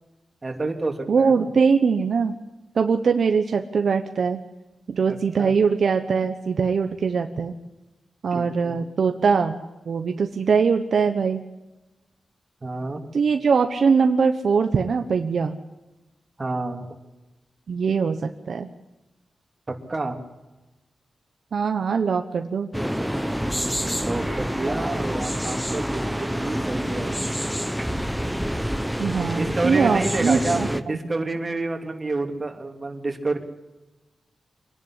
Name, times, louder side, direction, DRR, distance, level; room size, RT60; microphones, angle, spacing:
voice 1, 0.4-1.5 5.1-5.5 8.3-8.8 12.6-13.1 16.4-16.9 19.7-20.2 23.5-27.2 29.3-33.4, right 2 dB, 30° right, 3 dB, 2.9 m, -29 dB
voice 2, 1.1-2.3 2.7-4.4 4.9-7.5 8.2-9.6 9.9-11.4 13.1-15.6 17.7-18.7 21.5-22.7 29.0-30.7, right 5 dB, 65° right, 6 dB, 1.1 m, -22 dB
sound 1, 22.7-30.8, equal, ahead, 1.0 m, -27 dB
24.5 x 11.0 x 10.0 m, 1.1 s
wide cardioid pair, 110°, 0 cm